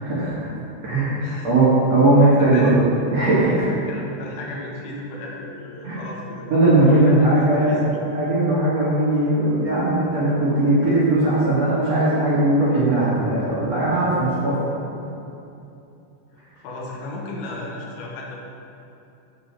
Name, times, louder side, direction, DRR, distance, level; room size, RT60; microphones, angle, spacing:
voice 1, 0.0-0.5 0.8-3.7 5.8-6.0 6.5-7.8 8.1-14.6, right 2 dB, 55° right, -10 dB, 1.9 m, -19 dB
voice 2, 2.4-2.7 3.9-6.5 6.9-8.0 16.3-18.4, left 2 dB, 85° left, -3 dB, 1.8 m, -35 dB
7.8 x 5.3 x 7.3 m, 2.8 s
omnidirectional pair, 5.6 m